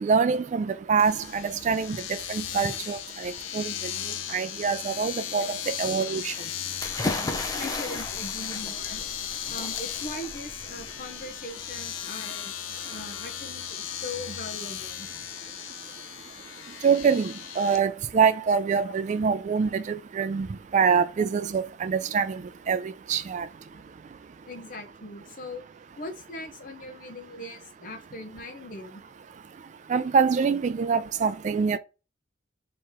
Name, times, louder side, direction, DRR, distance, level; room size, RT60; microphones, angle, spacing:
voice 1, 0.0-2.0 2.3-3.7 4.3-6.3 16.8-20.5 20.7-22.4 22.7-23.5 29.9-31.8, right 6 dB, 40° right, 0.3 m, -25 dB
Domestic sounds home sounds, 1.0-17.8, left 10 dB, 90° left, 0.5 m, -36 dB
sound 1, 6.8-11.6, left 2 dB, 20° left, 0.6 m, -35 dB
voice 2, 7.6-9.0 9.5-12.6 12.9-15.1 18.8-18.9 23.7-23.8 24.5-25.7 26.0-29.0, left 1 dB, 45° left, 0.8 m, -40 dB
3.5 x 3.0 x 4.4 m
head